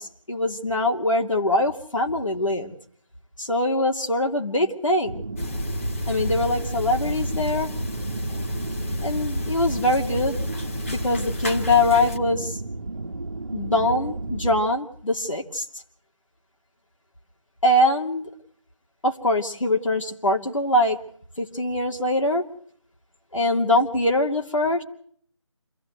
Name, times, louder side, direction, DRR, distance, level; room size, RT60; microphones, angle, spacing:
voice 1, 0.0-2.8 3.4-5.2 6.1-7.7 9.0-10.4 10.9-12.6 13.5-15.7 17.6-18.3 19.0-21.0 21.4-22.4 23.3-24.8, left 1 dB, 80° left, 2 dB, 2.7 m, -23 dB
sound 1, 5.0-14.6, right 2 dB, 55° right, 1.4 m, -33 dB
sound 2, 5.4-12.2, left 1 dB, 25° left, 1.9 m, -31 dB
27.0 x 15.0 x 8.0 m, 0.62 s
figure-of-eight pair, 165°, 16 cm